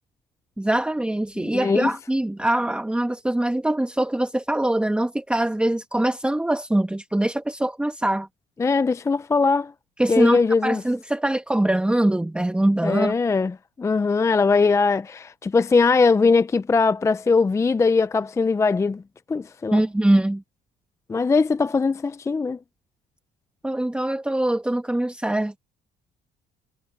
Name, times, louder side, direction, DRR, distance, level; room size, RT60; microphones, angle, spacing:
voice 1, 0.6-8.3 10.0-13.1 19.7-20.4 23.6-25.6, right 1 dB, 5° right, 1.2 m, -23 dB
voice 2, 1.4-1.9 8.6-9.7 10.1-10.8 12.8-19.0 19.3-19.8 21.1-22.6, left 4 dB, 15° left, 0.4 m, -20 dB
cardioid pair, 110°, 17 cm